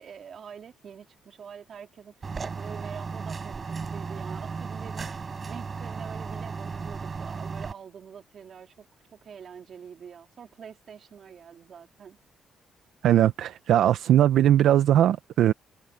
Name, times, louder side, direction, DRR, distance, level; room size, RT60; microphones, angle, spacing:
voice 1, 0.0-2.1 2.4-5.2 5.5-8.9 9.1-12.2, right 7 dB, 55° right, 3.6 m, -45 dB
sound 1, 2.2-7.7, right 5 dB, 35° right, 4.7 m, -35 dB
voice 2, 13.0-15.5, right 11 dB, 75° right, 0.6 m, -20 dB
cardioid pair, 90°, 0 cm